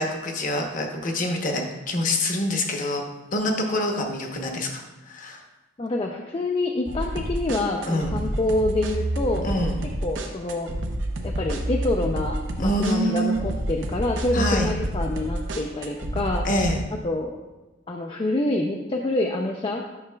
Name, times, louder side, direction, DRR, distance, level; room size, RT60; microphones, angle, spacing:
voice 1, 0.0-3.0 3.3-5.4 7.9-8.2 9.4-9.8 12.6-13.4 14.3-14.7 16.4-16.8, left 1 dB, 45° left, 2 dB, 0.9 m, -26 dB
voice 2, 5.8-9.5 10.0-10.7 11.2-16.5 17.0-17.3 17.9-19.8, left 2 dB, 30° left, 1 dB, 0.4 m, -26 dB
sound 1, 6.9-16.8, right 1 dB, 75° right, 0.7 m, -29 dB
9.5 x 5.9 x 2.3 m, 1.1 s
head